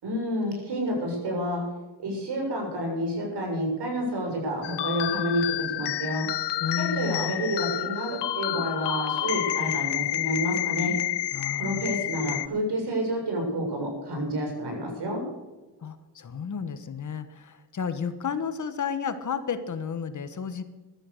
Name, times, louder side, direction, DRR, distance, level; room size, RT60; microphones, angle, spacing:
voice 1, 0.0-1.6 2.0-6.3 6.8-10.9 11.6-15.2, equal, 70° right, 1 dB, 7.1 m, -29 dB
sound 1, 4.6-12.5, left 14 dB, 75° left, 0.8 m, -29 dB
voice 2, 6.6-7.3 11.3-11.9 15.8-20.6, left 7 dB, 45° left, 10 dB, 1.4 m, -32 dB
15.5 x 13.0 x 6.7 m, 1.2 s
cardioid pair, 105°, 42 cm